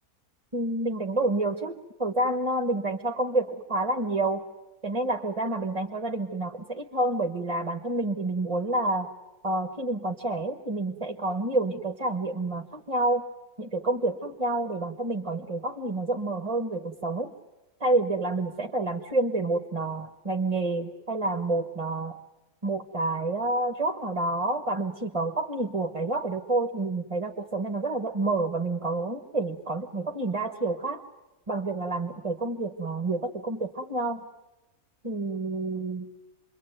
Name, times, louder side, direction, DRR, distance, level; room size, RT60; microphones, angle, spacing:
voice 1, 0.5-4.4 4.8-9.1 9.4-13.2 13.6-17.3 17.8-22.2 22.6-31.0 31.5-34.2 35.0-36.1, right 2 dB, 25° right, 5 dB, 1.2 m, -28 dB
27.5 x 23.0 x 9.2 m, 1.0 s
omnidirectional pair, 1.6 m